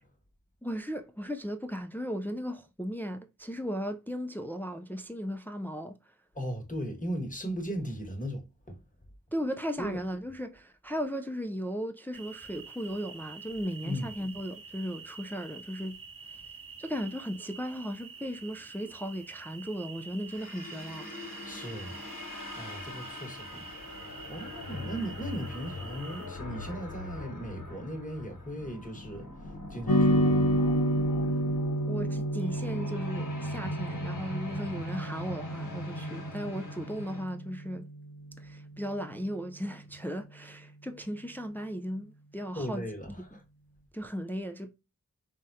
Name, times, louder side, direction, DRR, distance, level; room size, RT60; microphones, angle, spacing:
voice 1, 0.6-6.0 9.3-16.0 16.8-21.1 31.9-37.9 38.4-42.8 43.3-43.4 43.9-44.7, equal, 5° left, 0.3 m, -36 dB
voice 2, 6.3-8.8 9.8-10.0 13.8-14.1 21.4-22.0 22.6-23.8 24.3-30.7 42.5-43.4, equal, 25° left, 1.1 m, -37 dB
sound 1, 12.1-26.3, right 5 dB, 70° right, 0.7 m, -47 dB
sound 2, 20.3-37.2, left 2 dB, 60° left, 1.2 m, -42 dB
sound 3, 29.9-38.4, equal, 80° left, 0.8 m, -30 dB
3.5 x 2.2 x 2.5 m
wide cardioid pair, 45°, 35 cm